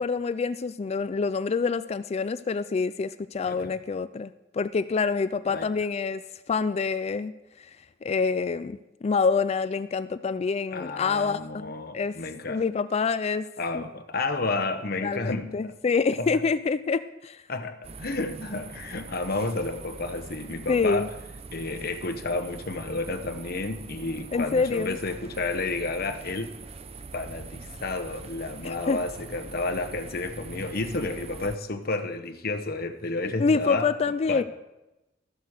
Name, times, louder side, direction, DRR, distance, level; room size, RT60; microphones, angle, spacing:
voice 1, 0.0-6.2 6.5-7.3 7.6-7.7 8.0-12.2 12.5-13.5 13.7-13.8 15.0-17.4 20.7-21.1 24.3-25.0 28.6-29.0 33.4-34.4, left 4 dB, 35° left, 14 dB, 0.3 m, -26 dB
voice 2, 3.5-3.8 5.5-5.7 10.7-12.6 13.6-15.7 16.2-16.4 17.5-21.1 21.5-26.5 27.1-33.9 34.3-34.4, left 3 dB, 55° left, 8 dB, 1.1 m, -31 dB
sound 1, 17.8-31.6, right 3 dB, 35° right, 0.6 m, -43 dB
14.0 x 7.8 x 6.5 m, 0.97 s
head